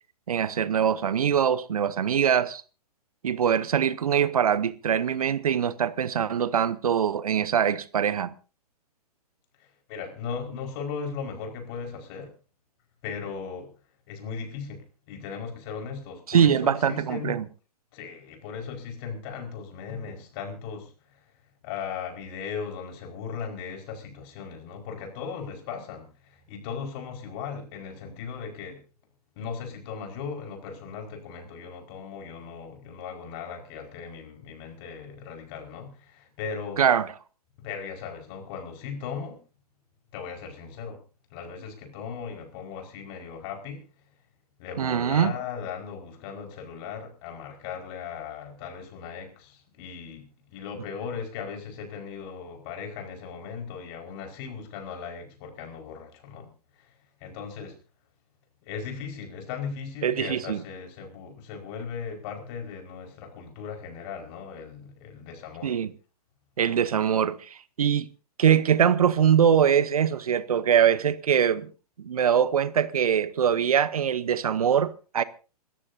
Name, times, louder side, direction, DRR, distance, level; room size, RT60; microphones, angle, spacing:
voice 1, 0.3-2.6 3.2-8.3 16.3-17.4 36.8-37.1 44.8-45.3 60.0-60.6 65.6-65.9 66.6-68.1 68.4-71.7 72.0-75.2, right 8 dB, 65° right, 1.0 m, -23 dB
voice 2, 9.6-12.3 13.0-13.7 14.1-17.4 17.9-21.3 21.6-28.8 29.3-36.8 37.6-39.4 40.1-41.0 41.3-43.9 44.6-56.5 56.8-57.8 58.6-65.8, left 6 dB, 40° left, 5.0 m, -38 dB
27.0 x 14.0 x 2.7 m
figure-of-eight pair, 120°, 20 cm